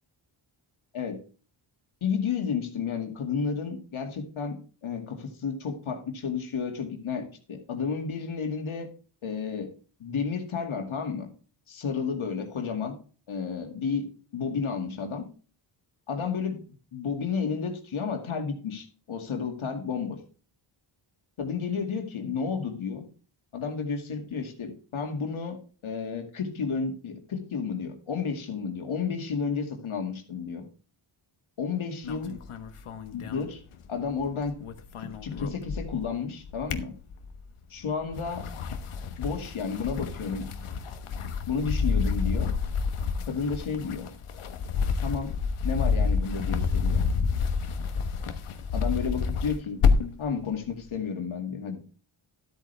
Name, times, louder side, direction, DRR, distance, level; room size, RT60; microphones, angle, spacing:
voice 1, 2.0-4.6 4.8-8.9 9.2-9.7 10.0-11.3 11.7-12.9 13.3-14.1 14.3-15.3 16.1-20.2 21.4-23.0 23.5-30.6 31.6-32.3 33.1-33.6 33.9-34.5 35.2-36.9 37.7-38.4 39.2-40.5 41.5-42.5 43.3-44.1 45.0-45.3 45.6-47.1 48.7-49.8 50.2-51.8, left 5 dB, 70° left, 4 dB, 2.3 m, -31 dB
sound 1, 32.0-34.2 34.5-36.1 36.4-37.5 38.0-50.2, left 5 dB, 90° left, 1.3 m, -29 dB
13.0 x 8.5 x 3.4 m, 0.39 s
wide cardioid pair, 140°, 50 cm